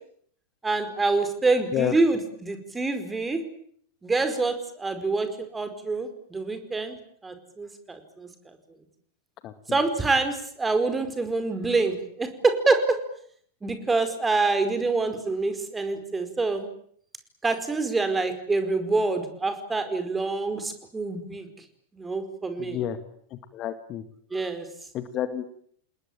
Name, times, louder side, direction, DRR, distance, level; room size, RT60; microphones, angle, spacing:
voice 1, 0.6-3.4 4.0-5.3 5.5-7.0 7.2-8.3 9.7-13.0 13.6-16.7 17.4-21.5 22.0-22.8 24.3-24.6, right 3 dB, 10° right, 9 dB, 4.9 m, -26 dB
voice 2, 9.4-9.8 22.6-23.0 23.3-24.0 24.9-25.5, left 11 dB, 35° left, 11 dB, 2.0 m, -30 dB
29.0 x 20.5 x 8.8 m, 0.64 s
figure-of-eight pair, 90°, 0 cm